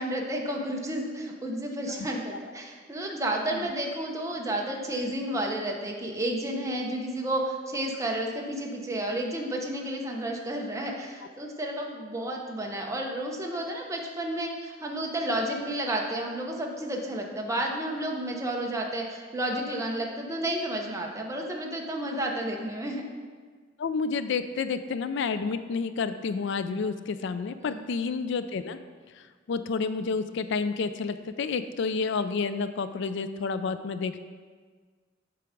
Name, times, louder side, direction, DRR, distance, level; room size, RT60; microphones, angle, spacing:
voice 1, 0.0-23.0 27.6-27.8, right 1 dB, 15° right, 0 dB, 0.9 m, -31 dB
voice 2, 23.8-28.8 29.5-34.2, left 5 dB, 65° left, 11 dB, 0.4 m, -30 dB
7.6 x 4.6 x 5.2 m, 1.6 s
head